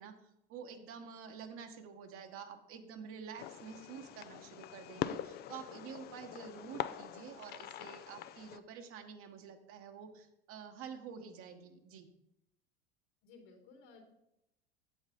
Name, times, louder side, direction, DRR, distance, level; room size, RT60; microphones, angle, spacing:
voice 1, 0.0-12.1, right 7 dB, 50° right, 6 dB, 1.2 m, -49 dB
Fireworks, 3.4-8.6, left 11 dB, 35° left, 0.4 m, -43 dB
voice 2, 13.2-14.0, left 4 dB, 65° left, 2 dB, 2.8 m, -57 dB
8.1 x 7.2 x 3.8 m, 0.82 s
hypercardioid pair, 80°, 30 cm